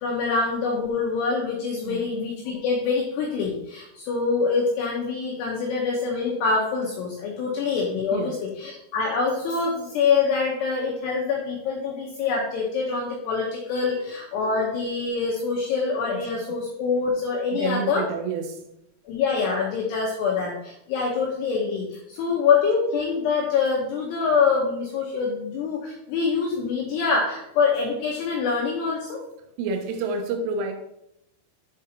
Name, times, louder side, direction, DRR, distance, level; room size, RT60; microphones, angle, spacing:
voice 1, 0.0-18.0 19.1-29.2, left 5 dB, 80° left, -2 dB, 2.4 m, -25 dB
voice 2, 13.8-14.1 16.1-16.3 17.5-18.6 29.6-30.7, right 4 dB, 90° right, 4 dB, 3.4 m, -29 dB
8.0 x 3.7 x 4.3 m, 0.81 s
omnidirectional pair, 5.8 m